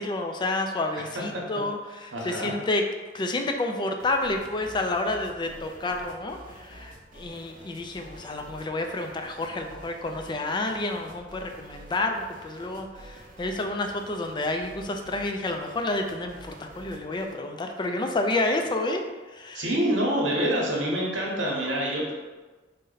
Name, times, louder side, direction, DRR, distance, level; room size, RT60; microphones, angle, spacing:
voice 1, 0.0-2.8 3.1-19.0 19.3-19.7, left 2 dB, 25° left, 4 dB, 0.3 m, -29 dB
voice 2, 2.1-2.5 19.5-22.1, equal, 70° right, -2 dB, 0.9 m, -26 dB
sound 1, 4.0-17.4, right 1 dB, 45° right, 0.6 m, -49 dB
3.9 x 2.1 x 3.8 m, 1.3 s
head